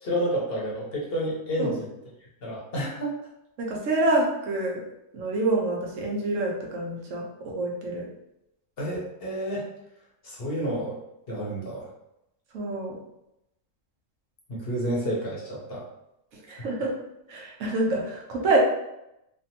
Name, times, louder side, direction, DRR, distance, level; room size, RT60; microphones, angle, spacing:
voice 1, 0.0-1.9 2.4-3.1 8.8-9.6 10.2-11.0 11.3-11.9 14.5-15.8, equal, 55° left, -5 dB, 1.0 m, -30 dB
voice 2, 3.6-4.8 5.1-8.0 12.5-13.0 16.5-16.9 17.3-18.6, right 2 dB, 80° right, -1 dB, 1.0 m, -27 dB
3.2 x 2.2 x 2.8 m, 0.86 s
omnidirectional pair, 1.3 m